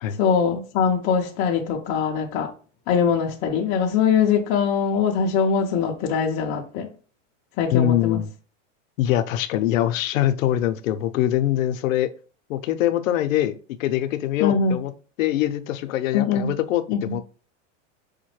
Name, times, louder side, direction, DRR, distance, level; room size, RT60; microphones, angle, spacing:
voice 1, 0.2-2.5 2.9-6.9 7.6-8.2 14.4-14.8 16.1-16.5 16.9-17.2, left 6 dB, 25° left, 0.3 m, -22 dB
voice 2, 7.7-8.3 9.0-12.1 12.5-14.9 15.2-17.2, left 12 dB, 90° left, 0.6 m, -23 dB
4.8 x 2.1 x 3.1 m
supercardioid pair, 145°, 39 cm